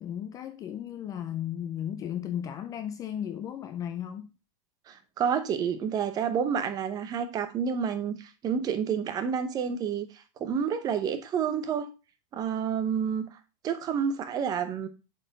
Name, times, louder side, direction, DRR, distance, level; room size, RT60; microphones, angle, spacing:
voice 1, 0.0-4.3, left 10 dB, 20° left, 0.4 m, -35 dB
voice 2, 4.9-10.1 10.4-11.9 12.3-13.3 13.6-14.9, right 7 dB, 25° right, 0.8 m, -29 dB
7.3 x 4.3 x 4.0 m
supercardioid pair, 155°, 17 cm